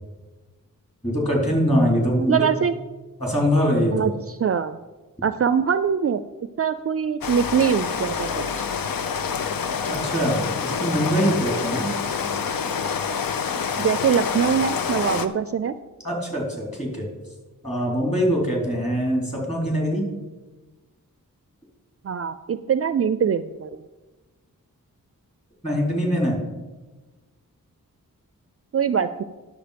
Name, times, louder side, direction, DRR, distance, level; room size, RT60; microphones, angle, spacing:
voice 1, 1.0-2.4 3.2-4.1 9.9-11.9 16.0-17.0 17.6-20.1 25.6-26.4, equal, 20° left, -2 dB, 3.8 m, -23 dB
voice 2, 2.3-2.7 3.9-4.8 5.2-6.2 6.6-8.7 13.8-15.8 22.0-23.7 28.7-29.2, right 7 dB, 45° right, 12 dB, 0.4 m, -23 dB
Rain, 7.2-15.3, left 6 dB, 85° left, 0.7 m, -27 dB
10.0 x 7.1 x 5.1 m, 1.2 s
wide cardioid pair, 80°, 34 cm